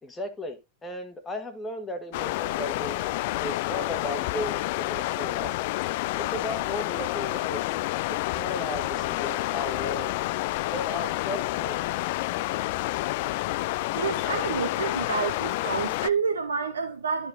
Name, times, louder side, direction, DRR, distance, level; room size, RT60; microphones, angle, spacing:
voice 1, 0.0-3.1 3.4-5.6 6.1-10.2 10.7-11.8, left 1 dB, 15° left, 1.4 m, -36 dB
sound 1, 2.1-16.1, left 18 dB, 50° left, 0.4 m, -29 dB
voice 2, 13.9-17.3, right 5 dB, 70° right, 1.0 m, -29 dB
13.0 x 4.6 x 2.6 m
figure-of-eight pair, 90°, 0 cm